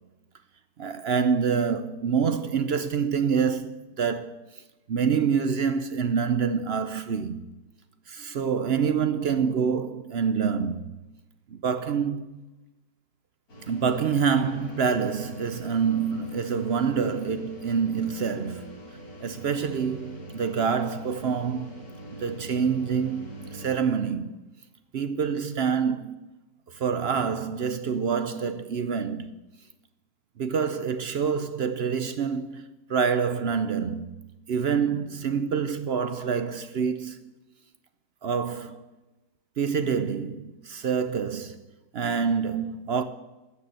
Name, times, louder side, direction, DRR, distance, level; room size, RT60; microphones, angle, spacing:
voice 1, 0.8-4.6 4.9-7.5 8.1-11.0 11.5-12.4 13.7-18.8 19.2-21.8 22.2-24.4 24.9-26.2 26.7-29.4 30.4-32.6 32.9-34.1 34.5-37.2 38.2-38.8 39.6-41.6 41.9-43.0, right 6 dB, 60° right, 0.7 m, -26 dB
sound 1, 13.5-23.7, right 1 dB, 65° left, 5.3 m, -43 dB
14.0 x 6.7 x 9.3 m
omnidirectional pair, 1.7 m